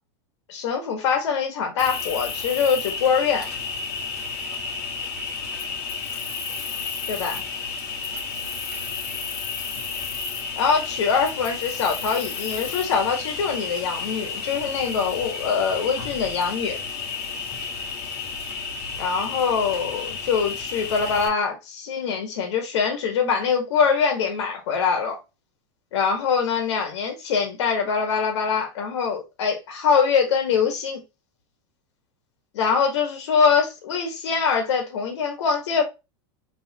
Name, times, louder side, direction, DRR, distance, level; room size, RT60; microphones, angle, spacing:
voice 1, 0.5-3.5 7.1-7.4 10.6-16.8 19.0-25.2 25.9-31.0 32.5-35.8, left 6 dB, 85° left, 1.7 m, -23 dB
Cricket, 1.8-21.3, left 5 dB, 45° left, 1.5 m, -32 dB
3.8 x 3.6 x 2.9 m
supercardioid pair, 160°, 14 cm